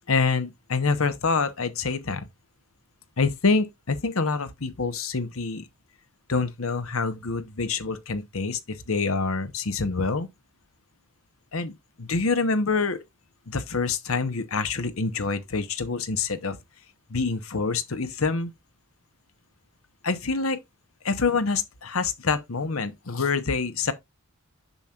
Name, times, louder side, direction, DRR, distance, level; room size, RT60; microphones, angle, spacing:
voice 1, 0.1-2.3 3.2-5.7 6.3-10.3 11.5-13.0 13.5-16.6 17.1-18.5 20.0-20.6 21.0-23.9, left 4 dB, 85° left, 1.1 m, -26 dB
6.9 x 6.0 x 2.4 m
head